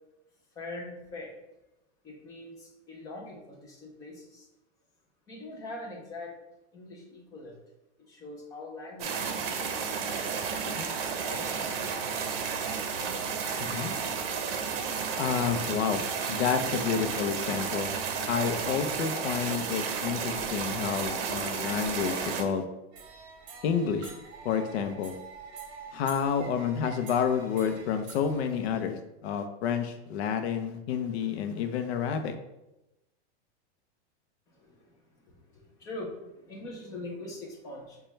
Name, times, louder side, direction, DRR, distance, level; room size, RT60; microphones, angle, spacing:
voice 1, 0.6-1.4 2.0-4.5 5.3-6.4 6.7-7.6 8.0-10.2 10.6-11.6 18.9-19.0 34.5-34.9 35.3-38.0, left 2 dB, 10° left, -1 dB, 0.4 m, -43 dB
sound 1, 9.0-22.4, right 6 dB, 55° right, 0.7 m, -32 dB
voice 2, 13.6-13.9 15.2-17.9 18.3-22.7 23.6-24.1 24.4-25.2 25.9-32.3, left 7 dB, 65° left, 7 dB, 0.6 m, -29 dB
sound 2, 22.9-28.8, right 5 dB, 40° right, 1.0 m, -47 dB
6.7 x 2.3 x 3.2 m, 0.94 s
supercardioid pair, 165°, 34 cm